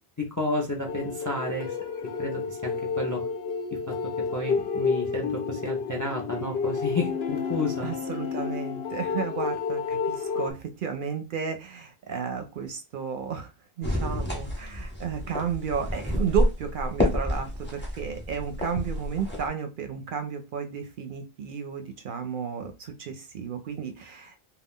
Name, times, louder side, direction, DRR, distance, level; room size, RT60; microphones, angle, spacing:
voice 1, 0.2-1.7 2.2-3.2 4.3-7.9, left 2 dB, 25° left, 1 dB, 0.4 m, -31 dB
sound 1, 0.9-10.5, left 5 dB, 80° left, 0.8 m, -30 dB
voice 2, 7.8-13.5 13.8-24.3, right 7 dB, 60° right, 6 dB, 0.6 m, -33 dB
sound 2, 13.8-19.5, left 1 dB, 10° left, 0.8 m, -29 dB
2.4 x 2.3 x 3.5 m, 0.28 s
omnidirectional pair, 1.1 m